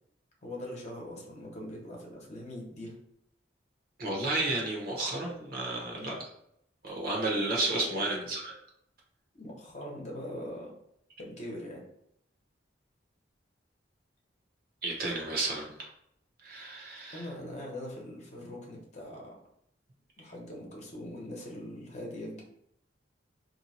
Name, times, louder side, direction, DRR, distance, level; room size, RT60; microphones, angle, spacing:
voice 1, 0.4-3.0 5.8-6.2 7.7-8.0 9.3-10.8 11.2-11.8 17.1-19.4 20.2-22.4, left 1 dB, 40° left, -2 dB, 0.9 m, -42 dB
voice 2, 4.0-6.2 6.8-8.5 14.8-15.9 16.4-17.2, right 2 dB, 50° right, -2 dB, 1.0 m, -32 dB
2.8 x 2.2 x 4.1 m, 0.73 s
head